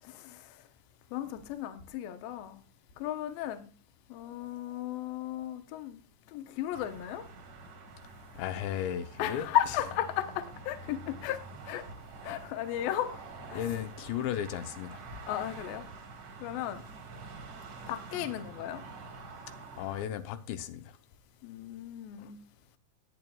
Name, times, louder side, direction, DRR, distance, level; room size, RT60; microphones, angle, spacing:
voice 1, 0.0-0.6 1.1-2.6 3.0-3.7 4.1-6.0 6.3-7.2 9.2-11.4 11.7-11.8 12.2-13.2 13.5-13.6 15.3-15.9 16.4-16.9 17.9-18.8 21.4-22.4, left 12 dB, 70° left, 2.4 m, -35 dB
sound 1, 6.7-20.0, right 3 dB, 50° right, 2.1 m, -47 dB
voice 2, 8.4-9.5 13.5-15.0 19.8-20.8, left 10 dB, 85° left, 3.1 m, -35 dB
20.0 x 8.9 x 2.3 m
omnidirectional pair, 5.0 m